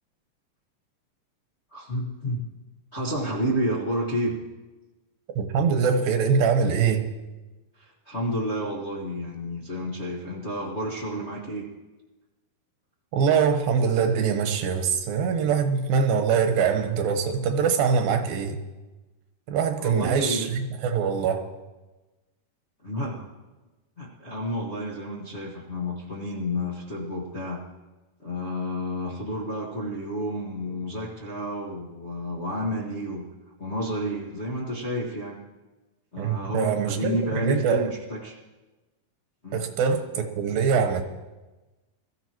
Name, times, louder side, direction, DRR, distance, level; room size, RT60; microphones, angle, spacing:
voice 1, 1.7-2.4 2.9-4.4 7.8-11.7 19.8-20.5 22.8-23.3 24.0-27.6 28.2-33.2 33.6-35.4 36.1-38.4 39.4-39.6, equal, 70° left, -4 dB, 0.6 m, -30 dB
voice 2, 5.4-7.1 13.1-18.6 19.5-21.4 36.2-37.9 39.5-41.0, right 6 dB, 85° right, 5 dB, 2.9 m, -23 dB
21.5 x 14.0 x 3.0 m, 1.1 s
omnidirectional pair, 4.1 m